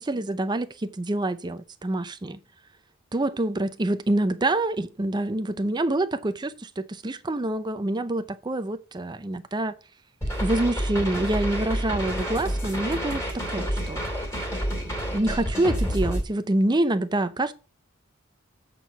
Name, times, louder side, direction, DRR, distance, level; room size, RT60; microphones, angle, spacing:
voice 1, 0.0-2.4 3.1-9.7 10.4-14.0 14.7-17.5, right 1 dB, 20° right, 0.5 m, -26 dB
sound 1, 10.2-16.2, equal, 10° left, 2.5 m, -29 dB
7.6 x 4.5 x 5.3 m
head